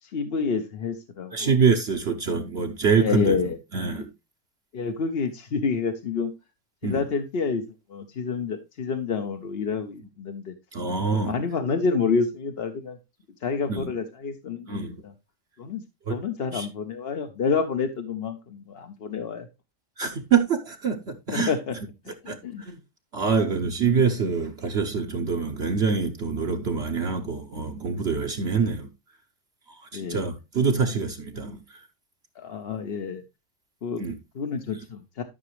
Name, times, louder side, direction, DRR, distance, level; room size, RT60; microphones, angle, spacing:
voice 1, 0.0-1.5 3.0-3.6 3.9-4.0 4.7-6.3 6.8-7.6 7.9-10.5 11.1-13.0 13.4-15.1 15.6-15.8 16.1-19.5 21.3-21.8 22.1-22.7 23.3-23.4 28.6-28.7 29.9-30.2 32.4-33.2 33.8-34.0 34.3-35.2, left 5 dB, 55° left, 1.0 m, -28 dB
voice 2, 1.3-3.4 3.7-4.1 6.8-7.0 10.7-11.4 13.7-13.9 14.7-15.0 16.1-16.2 16.5-16.7 20.0-21.5 22.3-22.4 22.7-22.8 23.1-28.9 29.8-31.8 34.0-34.2, right 5 dB, 55° right, 1.1 m, -25 dB
12.5 x 6.0 x 3.1 m
omnidirectional pair, 1.3 m